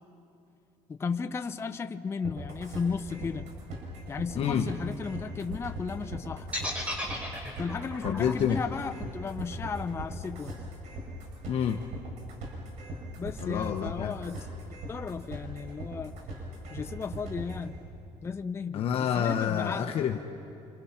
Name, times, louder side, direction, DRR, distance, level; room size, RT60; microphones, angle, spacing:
voice 1, 0.9-3.5 4.1-6.5 7.6-10.7 13.2-14.4 14.9-16.2 16.7-17.8 18.2-19.9, left 5 dB, 20° left, 7 dB, 0.6 m, -35 dB
sound 1, 2.2-17.7, right 1 dB, 65° right, 7.1 m, -40 dB
voice 2, 4.4-4.7 8.0-8.6 11.5-11.8 13.4-14.1 18.7-20.2, left 8 dB, 50° left, 4 dB, 1.1 m, -28 dB
sound 2, 6.5-10.6, equal, 10° right, 4.4 m, -36 dB
29.0 x 26.5 x 5.9 m, 2.7 s
cardioid pair, 140°, 13 cm